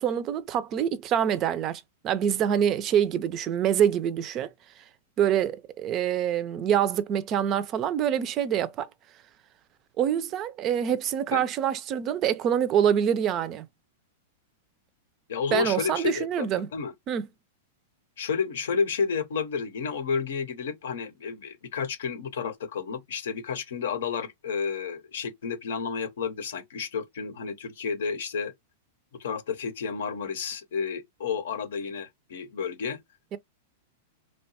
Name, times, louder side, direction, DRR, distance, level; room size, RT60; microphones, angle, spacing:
voice 1, 0.0-4.5 5.2-8.9 10.0-13.7 15.5-16.7 17.1-17.3 33.3-33.4, right 9 dB, 35° right, 0.4 m, -25 dB
voice 2, 15.3-16.5 16.7-16.9 18.2-28.5 29.2-33.0, left 6 dB, 75° left, 0.6 m, -31 dB
2.8 x 2.2 x 2.7 m
hypercardioid pair, 115°, 0 cm